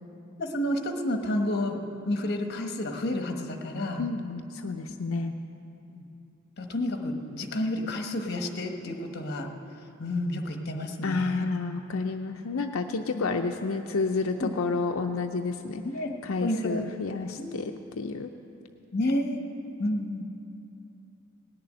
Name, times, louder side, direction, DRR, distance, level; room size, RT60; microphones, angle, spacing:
voice 1, 0.4-4.0 5.9-6.0 6.6-9.5 10.0-11.5 13.3-13.4 14.4-14.5 15.8-16.1 16.4-16.9 17.4-17.6 18.9-19.4 19.8-20.3, left 1 dB, 50° left, 4 dB, 1.2 m, -30 dB
voice 2, 4.0-5.3 11.0-15.8 16.2-18.3, left 4 dB, 85° left, 4 dB, 0.6 m, -30 dB
18.5 x 6.9 x 9.3 m, 2.8 s
head